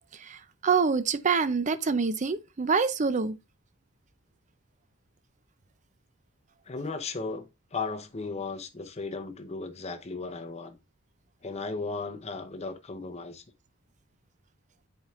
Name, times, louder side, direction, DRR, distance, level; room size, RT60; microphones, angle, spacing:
voice 1, 0.1-3.4, right 5 dB, 35° right, 0.5 m, -26 dB
voice 2, 6.7-10.8 11.4-13.4, left 3 dB, 30° left, 0.7 m, -36 dB
8.7 x 4.5 x 2.4 m
head